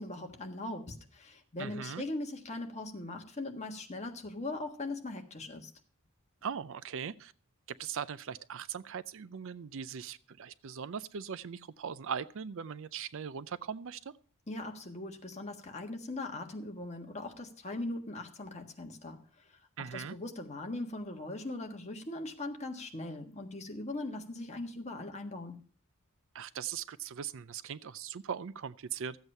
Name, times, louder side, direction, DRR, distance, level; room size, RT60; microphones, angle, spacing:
voice 1, 0.0-5.7 14.5-19.2 19.4-25.6, left 2 dB, 30° left, 1.5 m, -40 dB
voice 2, 1.6-2.0 6.4-7.3 7.8-14.1 19.8-20.2 26.3-29.2, right 7 dB, 60° right, 0.5 m, -40 dB
13.5 x 8.1 x 5.5 m
head